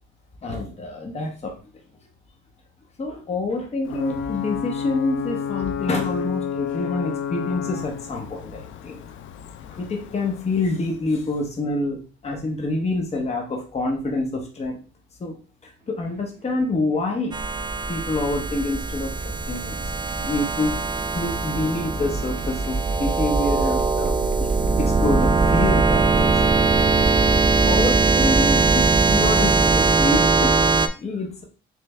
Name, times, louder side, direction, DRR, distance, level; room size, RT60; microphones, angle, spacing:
voice 1, 0.4-1.6 3.0-9.0 9.7-14.8 15.2-15.4 15.6-17.4 17.9-19.8 20.2-20.8 21.1-24.5 24.8-26.5 27.6-30.6 31.0-31.4, left 2 dB, 35° left, 1 dB, 0.9 m, -27 dB
Ocean / Boat Water vehicle / Alarm, 3.8-11.4, left 7 dB, 75° left, 0.4 m, -31 dB
sound 1, 15.8-29.9, right 3 dB, 50° right, 1.3 m, -38 dB
sound 2, 17.3-30.9, right 3 dB, 25° right, 0.3 m, -20 dB
3.3 x 3.2 x 3.2 m, 0.37 s
cardioid pair, 90°, 20 cm